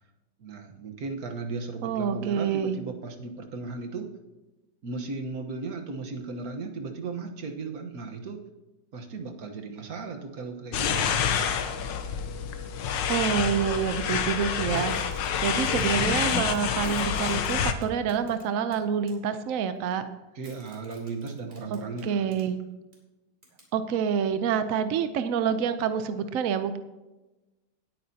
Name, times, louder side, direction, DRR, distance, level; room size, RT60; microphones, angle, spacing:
voice 1, 0.4-4.1 4.8-8.4 8.9-11.3 20.3-22.3, right 4 dB, 50° right, 4 dB, 1.5 m, -36 dB
voice 2, 1.8-2.8 13.1-20.1 21.7-22.6 23.7-26.8, right 7 dB, 75° right, 10 dB, 0.7 m, -27 dB
sound 1, 10.7-17.7, left 7 dB, 70° left, 1.5 m, -27 dB
sound 2, 14.7-16.0 16.3-16.6 16.8-19.1 20.4-22.5 22.9-23.0 23.4-23.6, equal, 25° right, 3.2 m, -51 dB
18.5 x 8.9 x 2.8 m, 1.1 s
omnidirectional pair, 2.2 m